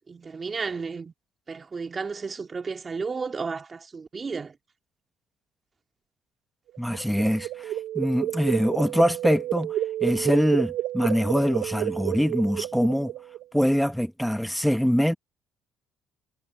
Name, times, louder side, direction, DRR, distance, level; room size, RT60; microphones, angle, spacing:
voice 1, 0.1-1.1 1.5-4.6, right 4 dB, 35° right, 2.6 m, -33 dB
sound 1, 6.7-13.4, right 13 dB, 70° right, 1.2 m, -30 dB
voice 2, 6.8-9.7 10.0-13.1 13.5-15.1, equal, ahead, 1.7 m, -24 dB
hypercardioid pair, 65°, 0 cm